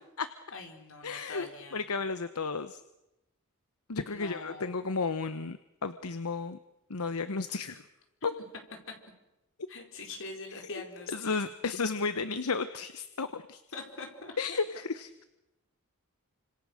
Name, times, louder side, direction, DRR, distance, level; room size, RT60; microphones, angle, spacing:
voice 1, 0.5-1.8 4.0-4.7 8.9-9.0 9.7-11.3 13.7-14.3, left 3 dB, 60° left, 3 dB, 4.5 m, -43 dB
voice 2, 1.0-2.8 3.9-6.6 6.9-7.8 11.1-13.6 14.4-15.2, left 4 dB, 80° left, 11 dB, 1.0 m, -33 dB
29.0 x 26.0 x 6.5 m, 0.92 s
head